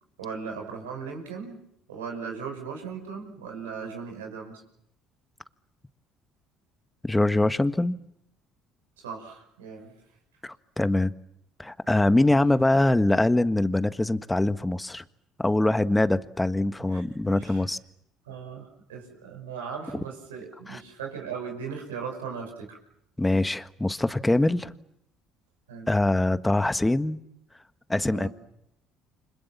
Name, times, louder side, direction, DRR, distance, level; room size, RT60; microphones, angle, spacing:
voice 1, 0.2-1.6 1.9-4.6 9.0-10.0 16.9-17.6 18.2-22.8 25.7-25.9 28.1-28.3, right 6 dB, 85° right, 2 dB, 5.9 m, -38 dB
voice 2, 7.1-8.0 10.4-11.1 11.6-15.0 15.4-17.8 20.7-20.8 23.2-24.7 25.9-27.2 27.9-28.3, left 2 dB, 10° left, 12 dB, 1.5 m, -23 dB
29.5 x 26.0 x 7.4 m, 0.78 s
hypercardioid pair, 60°, 0 cm